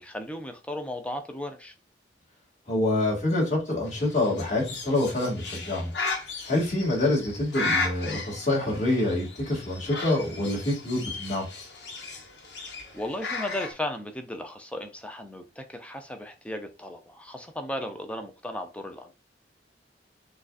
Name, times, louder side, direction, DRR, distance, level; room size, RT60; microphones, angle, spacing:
voice 1, 0.0-1.7 12.6-19.1, left 1 dB, 5° left, 0.6 m, -36 dB
voice 2, 2.7-5.9 6.5-11.5, left 2 dB, 40° left, 2.2 m, -26 dB
Bird, 3.8-13.7, left 3 dB, 70° left, 1.3 m, -35 dB
6.6 x 2.4 x 2.5 m
head